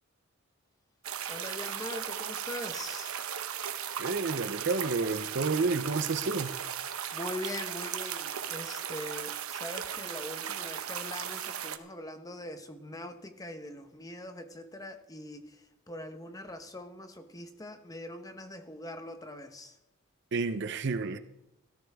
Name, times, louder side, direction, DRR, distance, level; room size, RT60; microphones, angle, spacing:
sound 1, 1.0-11.8, right 9 dB, 85° right, 0.9 m, -37 dB
voice 1, 1.3-3.2 6.9-19.8, left 1 dB, 15° left, 7 dB, 1.0 m, -42 dB
voice 2, 4.0-6.5 20.3-21.2, right 4 dB, 55° right, 11 dB, 0.7 m, -30 dB
16.5 x 13.5 x 3.6 m, 0.89 s
head